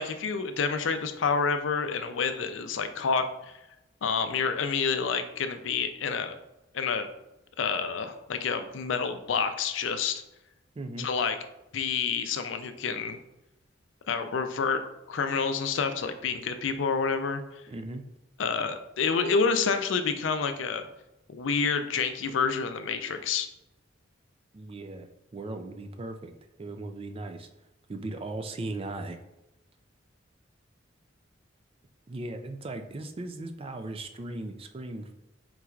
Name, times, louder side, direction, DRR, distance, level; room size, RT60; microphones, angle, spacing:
voice 1, 0.0-3.3 4.0-6.3 6.7-7.1 7.6-10.2 11.0-11.4 11.7-13.2 14.1-14.8 15.1-17.4 18.4-20.8 21.3-23.5, left 5 dB, 70° left, 9 dB, 0.4 m, -28 dB
voice 2, 10.8-11.1 17.7-18.1 24.5-26.3 26.6-27.5 27.9-29.2 32.1-35.1, right 2 dB, 30° right, 7 dB, 0.3 m, -37 dB
4.4 x 3.9 x 2.4 m, 0.92 s
head